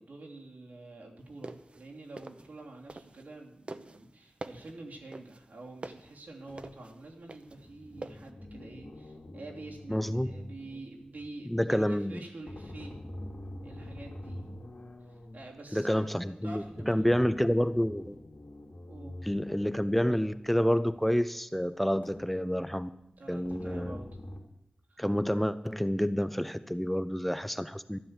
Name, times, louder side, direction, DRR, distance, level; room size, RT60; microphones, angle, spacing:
voice 1, 0.0-13.0 13.6-14.4 15.1-17.1 18.9-19.3 23.2-24.1 24.9-25.0, right 2 dB, 80° right, -1 dB, 3.0 m, -47 dB
sound 1, 1.2-3.4 3.7-8.3, right 2 dB, 45° right, 0.9 m, -45 dB
sound 2, 6.5-6.7 7.4-11.3 12.4-15.5 16.5-20.5 20.9-21.0 22.0-22.9 23.4-24.4, left 1 dB, 60° left, 2.6 m, -46 dB
voice 2, 9.9-10.3 11.5-12.2 15.7-18.2 19.2-22.9 23.3-24.0 25.0-28.0, equal, 5° left, 12 dB, 0.6 m, -28 dB
13.0 x 10.5 x 7.4 m, 0.80 s
wide cardioid pair, 100°, 3 cm